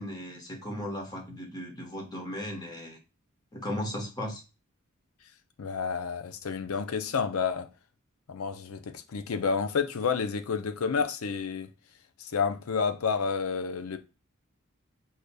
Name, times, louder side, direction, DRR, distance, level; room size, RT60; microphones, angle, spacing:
voice 1, 0.0-3.0 3.5-4.4, left 1 dB, 20° left, 1.0 m, -36 dB
voice 2, 5.6-7.7 8.3-11.7 12.2-14.0, left 5 dB, 75° left, 0.5 m, -30 dB
4.9 x 2.8 x 2.2 m
head